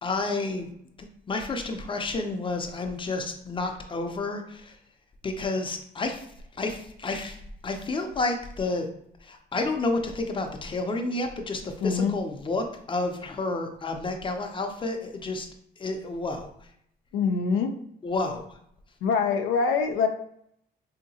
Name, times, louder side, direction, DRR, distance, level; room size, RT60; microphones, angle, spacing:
voice 1, 0.0-0.7 1.0-4.8 5.2-6.3 6.5-8.9 9.2-15.5 15.8-16.5 18.0-18.4, left 2 dB, 25° left, 4 dB, 0.6 m, -30 dB
voice 2, 11.8-12.1 17.1-17.7 19.0-20.1, left 5 dB, 85° left, 5 dB, 0.4 m, -24 dB
3.5 x 2.8 x 2.7 m, 0.70 s
cardioid pair, 90°, 20 cm